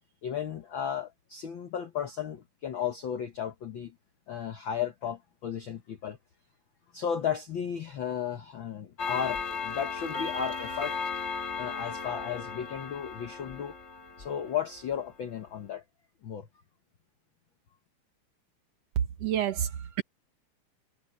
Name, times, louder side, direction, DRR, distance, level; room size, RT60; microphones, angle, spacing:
voice 1, 0.2-3.9 4.3-6.2 6.9-11.0 11.6-13.7 14.2-15.8 16.2-16.5, left 8 dB, 70° left, 1.2 m, -34 dB
Clock, 9.0-15.0, left 5 dB, 35° left, 1.1 m, -36 dB
voice 2, 19.0-20.0, right 9 dB, 65° right, 1.8 m, -29 dB
omnidirectional pair, 3.6 m